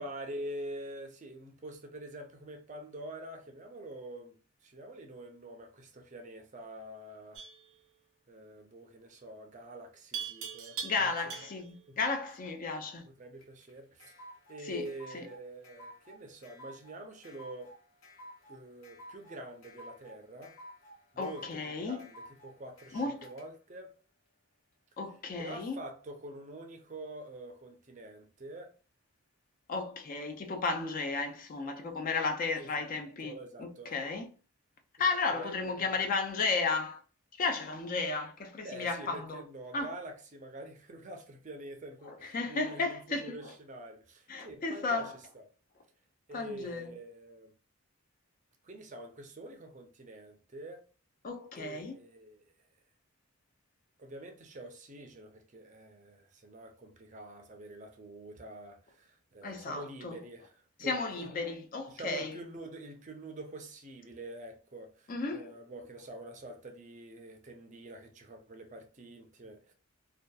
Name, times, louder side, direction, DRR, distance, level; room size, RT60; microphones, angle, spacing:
voice 1, 0.0-4.4 4.6-7.5 8.3-11.1 13.2-14.1 14.5-17.8 18.5-20.5 21.1-23.9 25.4-28.7 32.6-34.0 35.1-35.5 38.6-45.4 46.3-47.5 48.6-50.8 51.5-52.4 54.0-61.3 61.9-69.7, right 1 dB, 35° right, 0.4 m, -46 dB
Livestock farm animals working animals, 7.4-7.7 10.1-11.8, right 6 dB, 90° right, 0.6 m, -41 dB
voice 2, 10.8-13.1 14.6-15.3 21.2-22.1 22.9-23.3 25.0-25.8 29.7-34.3 35.0-37.0 37.4-39.4 39.7-39.9 42.1-43.5 44.3-45.2 46.3-46.9 51.2-52.0 59.4-60.2 60.8-62.4 65.1-65.5, left 4 dB, 40° left, 0.3 m, -34 dB
sound 1, 13.4-23.4, equal, 60° left, 0.8 m, -52 dB
2.7 x 2.2 x 2.2 m
head